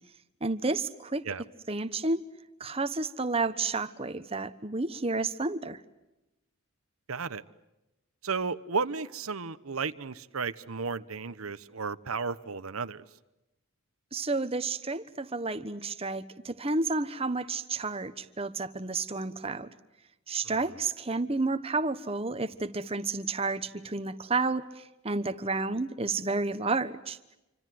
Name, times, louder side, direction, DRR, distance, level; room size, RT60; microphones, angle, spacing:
voice 1, 0.4-1.2 1.7-2.2 2.6-5.8 14.1-19.7 20.3-24.7 25.0-27.2, right 3 dB, 25° right, 11 dB, 1.2 m, -31 dB
voice 2, 7.1-7.4 8.2-13.0 20.4-20.8, right 5 dB, 90° right, 14 dB, 1.1 m, -34 dB
28.0 x 25.5 x 7.8 m, 0.95 s
head